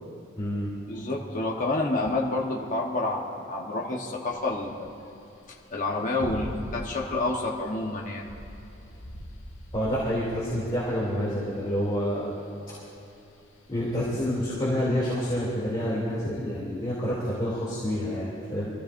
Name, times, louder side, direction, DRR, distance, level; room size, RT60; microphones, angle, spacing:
voice 1, 0.4-0.7 9.7-12.4 12.7-12.8 13.7-18.7, equal, 25° left, -8 dB, 2.8 m, -28 dB
voice 2, 0.9-4.9 5.7-8.2, left 2 dB, 40° left, -2 dB, 1.2 m, -29 dB
sound 1, 4.3-15.1, equal, 85° left, 1.3 m, -43 dB
25.5 x 15.0 x 2.6 m, 2.9 s
head